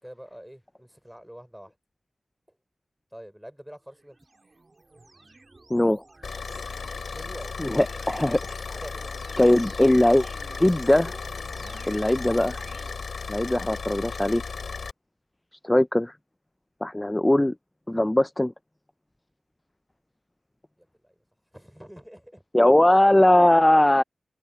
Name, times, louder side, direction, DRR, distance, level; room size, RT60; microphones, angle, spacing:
voice 1, 0.0-1.7 3.1-4.2 7.1-7.6 7.9-8.0 8.7-9.1 20.8-21.2 21.5-22.7, equal, 5° right, 5.3 m, -45 dB
sound 1, 3.9-12.9, right 2 dB, 30° right, 1.9 m, -48 dB
voice 2, 5.7-6.0 7.6-8.6 9.4-10.3 10.6-11.1 11.9-12.5 13.3-14.4 15.6-16.1 16.8-17.6 17.9-18.5 22.5-24.0, left 1 dB, 15° left, 0.3 m, -20 dB
Car / Idling, 6.2-14.9, left 5 dB, 70° left, 2.7 m, -35 dB
open air
wide cardioid pair, 115°, 0 cm